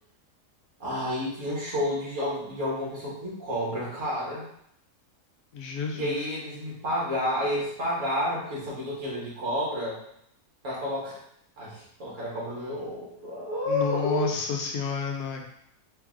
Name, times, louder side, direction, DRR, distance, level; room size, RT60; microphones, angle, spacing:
voice 1, 0.8-4.5 5.9-10.0 10.6-11.2 11.6-14.3, left 1 dB, 55° right, -6 dB, 1.7 m, -30 dB
voice 2, 5.5-6.3 13.7-15.4, left 5 dB, 75° left, 2 dB, 1.1 m, -30 dB
3.9 x 2.8 x 3.6 m, 0.72 s
omnidirectional pair, 1.7 m